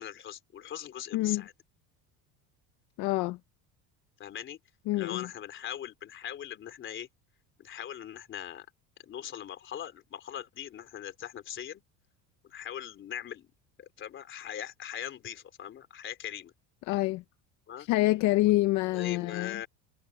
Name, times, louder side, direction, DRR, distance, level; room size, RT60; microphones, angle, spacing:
voice 1, 0.0-1.5 4.2-4.6 4.9-7.1 7.6-8.7 9.0-11.8 12.4-13.5 13.8-16.5 17.7-17.9 18.4-18.5 18.9-19.7, left 10 dB, 35° left, 3.5 m, -40 dB
voice 2, 3.0-3.4 4.9-5.3 16.9-17.2 17.8-19.6, left 18 dB, 60° left, 0.9 m, -27 dB
cardioid pair, 155°, 34 cm